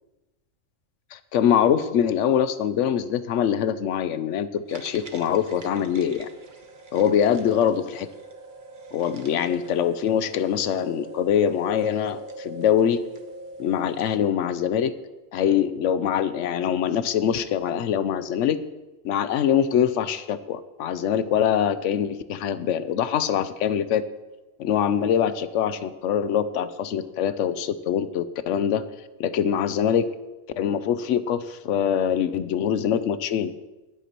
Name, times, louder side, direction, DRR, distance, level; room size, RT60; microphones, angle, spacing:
voice 1, 1.1-6.3 6.9-8.1 8.9-13.0 13.6-14.9 15.3-18.6 19.0-24.0 24.6-28.8 29.2-30.1 30.6-33.5, left 9 dB, 70° left, 13 dB, 0.9 m, -23 dB
sound 1, 4.7-14.2, right 3 dB, 40° right, 1.1 m, -43 dB
22.0 x 8.1 x 3.0 m, 1.1 s
omnidirectional pair, 1.3 m